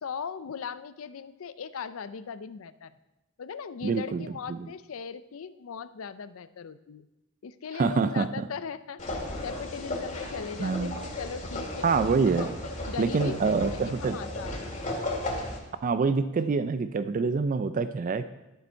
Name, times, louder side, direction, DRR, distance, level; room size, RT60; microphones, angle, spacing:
voice 1, 0.0-2.9 3.4-7.1 7.4-11.9 12.4-12.5 12.9-14.9, left 6 dB, 70° left, 14 dB, 0.5 m, -39 dB
voice 2, 3.8-4.6 7.8-8.4 10.6-10.9 11.8-12.5 13.0-14.2 15.8-18.2, right 4 dB, 40° right, 12 dB, 0.3 m, -26 dB
sound 1, 9.0-15.6, left 1 dB, 35° left, 2.0 m, -35 dB
11.5 x 6.8 x 4.5 m, 0.99 s
head